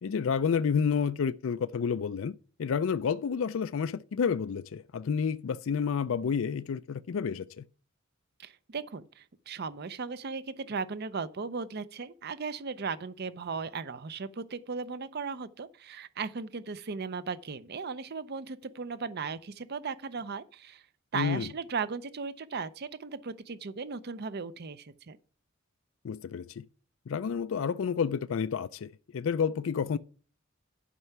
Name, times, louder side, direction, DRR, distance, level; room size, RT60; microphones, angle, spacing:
voice 1, 0.0-7.6 21.1-21.5 26.0-26.6 27.1-30.0, left 6 dB, 70° left, 0.4 m, -30 dB
voice 2, 8.4-20.8 21.1-25.2, right 5 dB, 50° right, 0.6 m, -37 dB
11.0 x 5.5 x 5.9 m
head